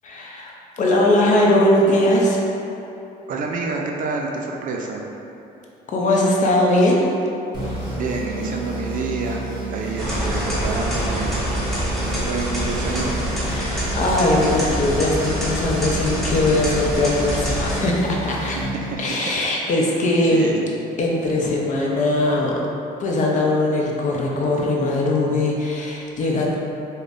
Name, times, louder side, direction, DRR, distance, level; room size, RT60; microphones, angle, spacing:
voice 1, 0.0-2.4 5.9-7.0 13.5-18.6 19.0-20.5 21.0-22.5 23.0-26.5, left 1 dB, 50° left, -2 dB, 0.6 m, -20 dB
voice 2, 3.3-5.0 8.0-9.5 9.7-13.2 18.4-19.4 20.3-20.6, right 4 dB, 55° right, 1 dB, 0.4 m, -28 dB
sound 1, 7.5-19.3, right 2 dB, 25° right, 1.3 m, -30 dB
sound 2, 10.0-17.8, equal, ahead, 0.8 m, -26 dB
5.1 x 2.1 x 2.5 m, 2.9 s
cardioid pair, 110°, 17 cm